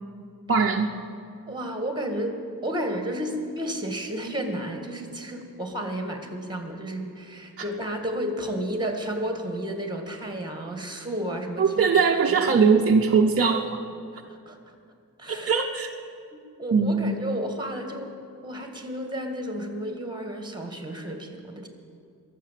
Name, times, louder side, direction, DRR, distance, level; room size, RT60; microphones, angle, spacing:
voice 1, 0.5-0.9 11.6-13.8 15.3-15.9 16.7-17.1, right 5 dB, 40° right, 1 dB, 0.7 m, -21 dB
voice 2, 1.5-11.8 12.3-12.7 14.1-14.7 15.2-15.5 16.3-18.2 18.4-21.7, right 1 dB, 10° right, 4 dB, 1.8 m, -32 dB
22.5 x 7.5 x 7.5 m, 2.3 s
wide cardioid pair, 140°, 36 cm